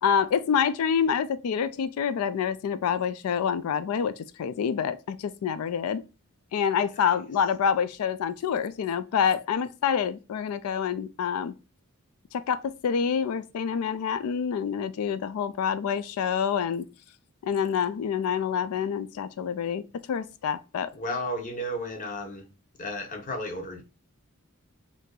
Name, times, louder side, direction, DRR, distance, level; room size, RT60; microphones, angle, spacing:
voice 1, 0.0-6.0 6.5-11.5 12.3-16.9 17.4-20.9, left 7 dB, 90° left, 0.3 m, -27 dB
voice 2, 20.9-22.4 22.8-23.8, left 1 dB, 40° left, 0.7 m, -33 dB
2.7 x 2.5 x 3.7 m
head